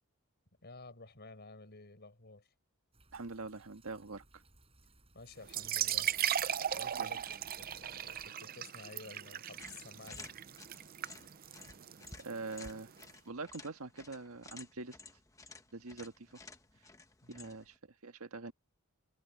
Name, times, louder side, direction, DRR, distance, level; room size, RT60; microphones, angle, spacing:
voice 1, 0.6-2.5 5.1-6.1 6.7-10.3 17.2-17.6, left 3 dB, 50° left, 5.6 m, -53 dB
sound 1, 2.9-8.3, right 2 dB, 30° right, 5.6 m, -64 dB
voice 2, 3.1-4.4 6.9-7.1 12.2-12.9 13.2-15.0 15.7-16.4 17.3-17.8 18.0-18.5, right 3 dB, 85° right, 1.7 m, -44 dB
sound 2, 5.4-13.0, right 10 dB, 45° right, 0.6 m, -37 dB
sound 3, 9.5-17.8, left 3 dB, 15° left, 1.2 m, -54 dB
head